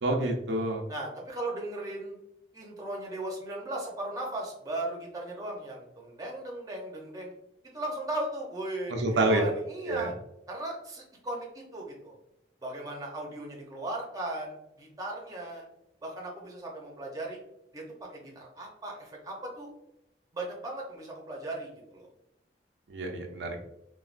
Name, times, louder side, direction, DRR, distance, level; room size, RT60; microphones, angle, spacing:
voice 1, 0.0-0.8 8.9-9.4 9.9-10.1 22.9-23.6, right 2 dB, 85° right, 2 dB, 0.5 m, -28 dB
voice 2, 0.9-2.2 2.5-7.3 7.7-10.1 10.5-12.2 12.6-15.7 16.0-17.4 17.7-17.8 18.1-19.7 20.3-22.1, right 1 dB, 20° right, -2 dB, 0.6 m, -37 dB
3.3 x 2.2 x 2.4 m, 0.79 s
head